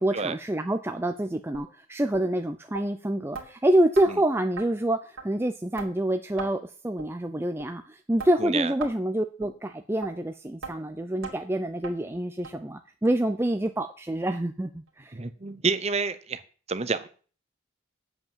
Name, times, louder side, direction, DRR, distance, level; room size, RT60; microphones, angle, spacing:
voice 1, 0.0-15.2, right 1 dB, 10° right, 7 dB, 0.5 m, -27 dB
sound 1, 1.5-1.7 2.1-2.3 2.7-2.8 3.3-3.5 3.9-4.1 4.6-4.7 5.2-5.3 5.8-5.9 6.4-6.5 7.0-7.1 7.6-7.7 8.2-8.3 8.8-9.0 9.4-9.5 10.0-10.1 10.6-10.7 11.2-11.4 11.8-11.9 12.4-12.5 13.0-13.1 13.7-13.8 14.3-14.4, right 4 dB, 85° right, 2.5 m, -37 dB
voice 2, 8.4-8.7 15.1-16.4 16.7-17.1, right 4 dB, 30° right, 12 dB, 0.8 m, -28 dB
8.2 x 8.1 x 7.3 m, 0.41 s
head